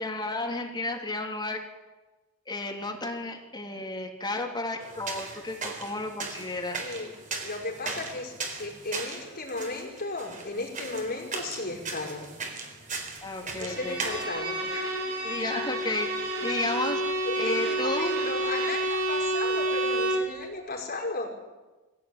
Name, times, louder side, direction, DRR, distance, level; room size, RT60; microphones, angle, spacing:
voice 1, 0.0-1.6 2.5-6.9 13.2-14.0 15.2-17.0 17.3-18.1, left 2 dB, 20° left, 1 dB, 3.0 m, -32 dB
sound 1, 4.8-14.2, right 4 dB, 35° right, 3.9 m, -38 dB
voice 2, 6.8-12.3 13.4-14.9 17.2-21.3, left 2 dB, 45° left, -1 dB, 5.6 m, -35 dB
Bowed string instrument, 13.7-20.3, right 1 dB, 80° right, 5.9 m, -29 dB
22.5 x 16.5 x 8.8 m, 1.2 s
head